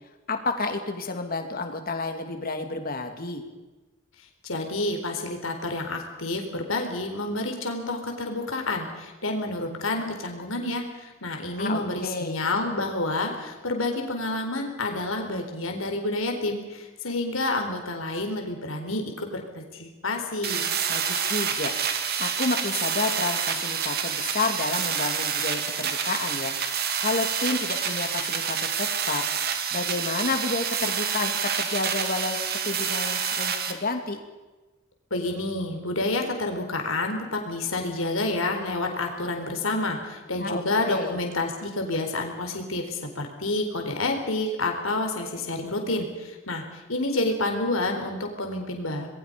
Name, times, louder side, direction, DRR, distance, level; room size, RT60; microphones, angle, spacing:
voice 1, 0.3-3.4 11.6-12.4 20.9-21.7 22.2-26.5 27.0-29.2 29.7-32.4 32.6-34.2 40.4-41.1, left 3 dB, 45° left, 5 dB, 2.9 m, -30 dB
voice 2, 4.4-20.7 35.1-49.1, left 2 dB, 75° left, 4 dB, 4.2 m, -29 dB
sound 1, 20.4-33.7, right 7 dB, 50° right, 2.4 m, -28 dB
27.5 x 21.5 x 5.4 m, 1.2 s
head